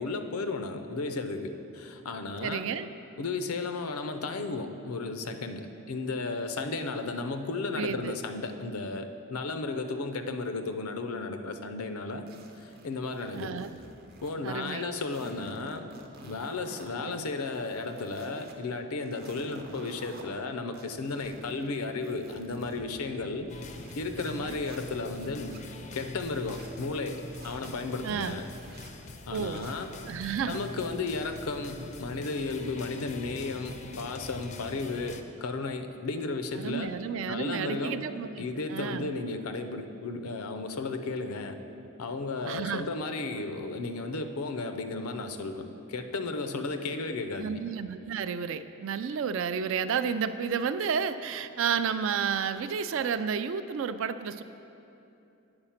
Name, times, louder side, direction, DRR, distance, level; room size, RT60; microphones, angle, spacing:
voice 1, 0.0-2.7 3.2-12.2 12.6-13.6 14.2-15.8 16.2-23.5 24.0-25.6 25.9-27.2 27.4-28.5 29.3-29.9 30.5-36.9 37.3-38.1 38.4-41.6 42.0-45.6 45.9-47.6, left 3 dB, 85° left, 7 dB, 0.6 m, -34 dB
voice 2, 2.4-2.9 7.7-8.1 13.3-13.7 14.4-14.9 17.0-17.2 24.3-24.6 28.0-28.4 29.3-29.7 30.1-30.6 36.6-39.1 42.4-42.9 47.4-54.4, right 7 dB, 60° right, 12 dB, 0.3 m, -31 dB
sound 1, 12.3-14.4 14.6-16.9 17.3-18.5 18.9-20.2 20.7-24.0 24.5-25.6 26.1-26.7 27.3-27.9 28.4-28.9 29.4-29.9, right 2 dB, 45° right, 0.7 m, -50 dB
sound 2, 23.5-35.2, left 2 dB, 35° left, 0.4 m, -44 dB
8.7 x 4.9 x 5.7 m, 2.8 s
head